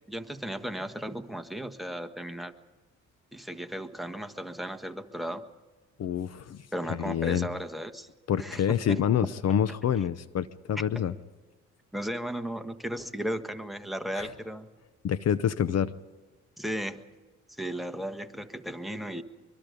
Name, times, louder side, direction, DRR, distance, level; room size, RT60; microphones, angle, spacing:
voice 1, 0.1-2.5 3.3-5.4 6.7-8.1 8.4-9.0 11.9-14.7 16.6-17.0 17.6-19.2, equal, ahead, 9 dB, 1.5 m, -35 dB
voice 2, 6.0-6.6 7.1-7.5 8.3-11.1 14.1-14.3 15.0-15.9, left 9 dB, 55° left, 15 dB, 0.8 m, -27 dB
24.0 x 23.5 x 5.2 m, 1.3 s
cardioid pair, 90°, 30 cm